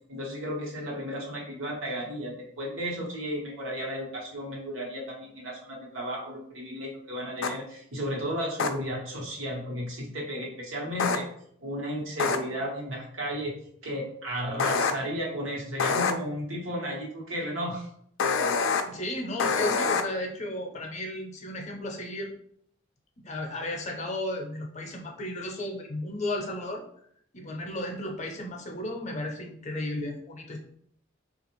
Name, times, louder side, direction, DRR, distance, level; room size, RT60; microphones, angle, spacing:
voice 1, 0.1-11.3 11.6-13.5 13.8-17.9, equal, 90° right, -2 dB, 1.1 m, -34 dB
sound 1, 7.4-7.5 8.6-8.7 11.0-11.2 12.2-12.4 14.6-14.9 15.8-16.1 18.2-18.8 19.4-20.0, left 5 dB, 80° left, 0.4 m, -25 dB
voice 2, 18.9-22.3 23.2-26.8 27.3-30.6, left 1 dB, 35° left, 2 dB, 0.6 m, -34 dB
3.3 x 2.4 x 3.0 m, 0.66 s
head